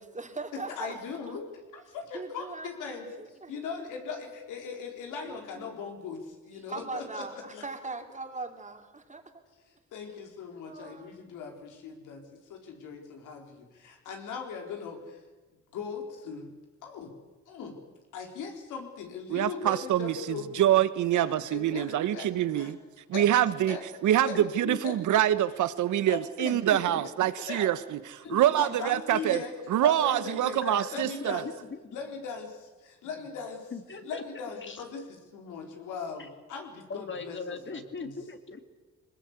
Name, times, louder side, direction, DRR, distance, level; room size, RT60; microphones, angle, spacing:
voice 1, 0.0-0.9 1.3-1.4 2.1-3.9 5.2-5.8 6.6-9.3 10.6-11.1, right 3 dB, 25° right, 5 dB, 3.0 m, -40 dB
voice 2, 0.5-1.5 1.7-7.2 7.5-7.6 9.9-15.2 15.7-16.5 16.8-17.1 17.5-17.8 18.1-20.7 21.1-22.3 22.5-22.7 23.1-23.3 23.7-23.8 24.2-24.3 24.8-25.0 26.1-26.2 27.5-27.8 28.2-29.5 29.8-30.6 30.9-31.5 31.9-33.7 34.0-38.1, left 5 dB, 90° left, 3 dB, 4.1 m, -39 dB
voice 3, 19.3-22.8 23.1-23.8 24.0-29.4 29.7-31.4, right 12 dB, 75° right, 15 dB, 1.2 m, -25 dB
voice 4, 24.3-24.8 26.4-27.0 28.2-28.4 30.6-31.4 31.7-31.8 33.7-34.2 34.5-34.8 36.2-36.3 36.9-38.6, left 4 dB, 40° left, 7 dB, 2.4 m, -39 dB
21.5 x 20.0 x 8.2 m, 1.2 s
cardioid pair, 90°, 30 cm